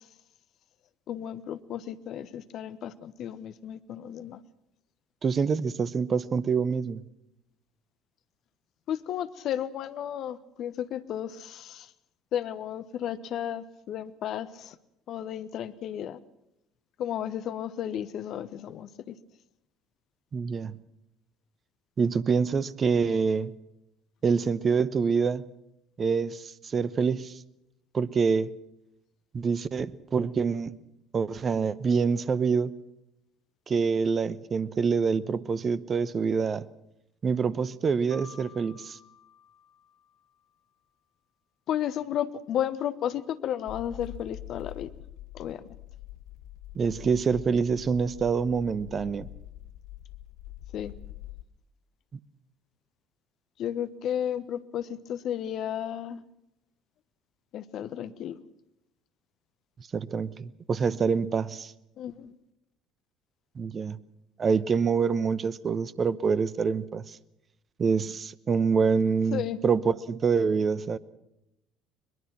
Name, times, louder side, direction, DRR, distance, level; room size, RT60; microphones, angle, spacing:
voice 1, 1.1-4.4 8.9-11.9 12.3-14.7 15.1-16.2 17.0-19.2 41.7-44.9 45.3-45.6 50.7-50.9 53.6-56.2 57.5-58.4 62.0-62.3 69.3-69.6, left 10 dB, 50° left, 1.1 m, -33 dB
voice 2, 5.2-7.1 20.3-20.8 22.0-23.5 24.2-25.4 26.0-27.4 27.9-28.5 29.3-30.8 31.1-32.7 33.7-36.7 37.2-39.0 46.7-49.3 59.9-61.7 63.6-64.0 64.4-67.0 67.8-71.0, right 5 dB, 35° right, 0.9 m, -26 dB
Mallet percussion, 38.1-40.9, left 6 dB, 85° right, 3.9 m, -53 dB
sound 1, 43.7-51.4, left 14 dB, 65° left, 0.8 m, -44 dB
22.0 x 21.5 x 6.0 m
figure-of-eight pair, 60°, 0 cm